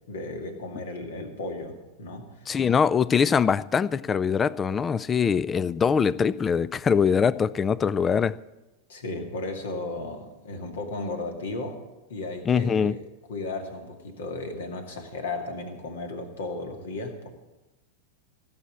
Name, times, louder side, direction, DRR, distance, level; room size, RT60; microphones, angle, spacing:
voice 1, 0.1-2.6 8.9-11.8 12.1-13.0 13.3-17.3, left 2 dB, 60° left, 2.2 m, -35 dB
voice 2, 2.5-8.4 12.5-13.0, left 6 dB, 20° left, 0.4 m, -23 dB
16.5 x 7.3 x 8.5 m
figure-of-eight pair, 90°, 0 cm